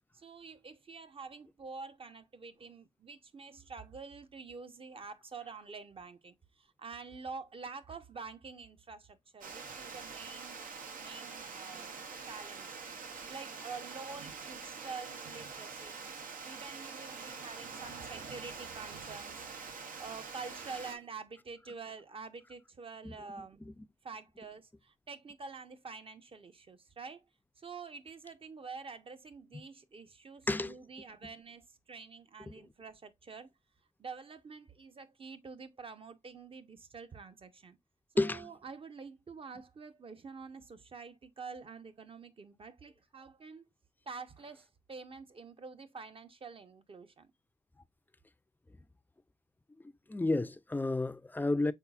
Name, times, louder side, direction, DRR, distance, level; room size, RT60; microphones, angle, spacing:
voice 1, 0.1-10.6 11.0-12.0 12.3-12.8 13.3-16.0 16.4-19.5 20.0-23.7 24.0-27.2 27.6-33.5 34.0-37.8 38.1-43.6 44.1-47.3, right 4 dB, 40° right, 0.7 m, -47 dB
Water, 9.4-21.0, right 5 dB, 75° right, 0.7 m, -45 dB
voice 2, 50.1-51.7, left 2 dB, 15° left, 0.4 m, -31 dB
5.5 x 4.0 x 2.3 m
cardioid pair, 70°, 14 cm